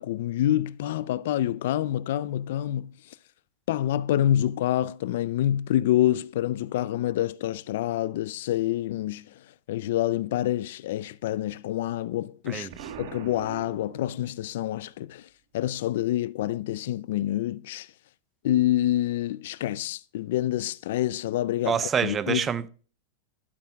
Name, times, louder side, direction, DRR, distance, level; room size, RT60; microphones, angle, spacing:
voice 1, 0.0-2.9 3.7-9.3 9.7-12.7 13.0-15.3 15.5-17.9 18.4-22.4, left 13 dB, 65° left, 0.4 m, -27 dB
Explosion, 12.7-14.5, right 8 dB, 70° right, 1.3 m, -42 dB
voice 2, 21.7-22.7, right 7 dB, 20° right, 0.4 m, -26 dB
12.0 x 8.5 x 2.2 m
supercardioid pair, 150°, 0 cm